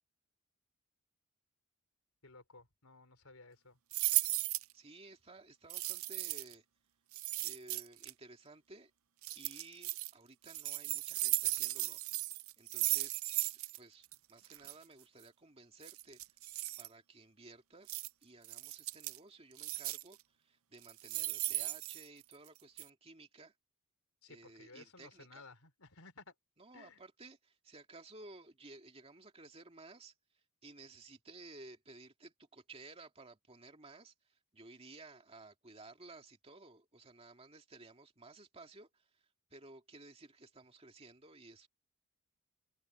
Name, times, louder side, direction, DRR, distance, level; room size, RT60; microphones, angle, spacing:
voice 1, 2.2-3.8 24.2-26.3 26.7-27.0, left 3 dB, 70° left, 4.0 m, -57 dB
sound 1, 3.9-4.7 5.7-6.5 7.1-8.1 9.2-10.1 10.5-13.8 14.0-14.1 14.4-14.7 15.8-16.9 17.9-18.1 18.4-19.2 19.6-20.1 20.8-22.5 22.8-22.9, right 18 dB, 65° right, 0.6 m, -36 dB
voice 2, 4.7-6.6 7.4-8.9 9.3-12.0 12.6-13.2 13.7-16.2 16.8-20.2 20.4-23.5 24.3-25.5 26.6-30.1 30.6-39.2 39.5-41.7, right 2 dB, 25° right, 2.5 m, -56 dB
head